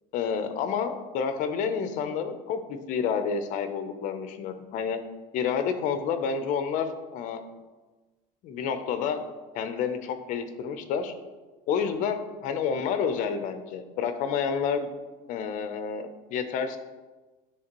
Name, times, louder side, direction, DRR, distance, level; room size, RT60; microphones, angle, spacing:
voice 1, 0.1-5.0 5.3-7.4 8.4-9.2 9.5-11.1 11.7-14.9 15.3-16.8, left 6 dB, 50° left, 9 dB, 0.6 m, -29 dB
9.2 x 3.6 x 2.9 m, 1.2 s
cardioid pair, 155°, 17 cm